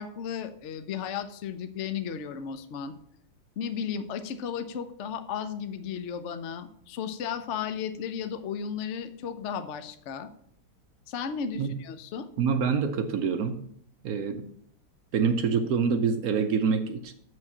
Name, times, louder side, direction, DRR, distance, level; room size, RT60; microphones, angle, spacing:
voice 1, 0.0-3.0 3.6-10.3 11.1-12.3, left 7 dB, 85° left, 9 dB, 0.6 m, -34 dB
voice 2, 12.4-13.6 14.0-14.5 15.1-17.1, right 6 dB, 65° right, 8 dB, 0.9 m, -26 dB
6.6 x 6.2 x 7.2 m, 0.68 s
omnidirectional pair, 2.3 m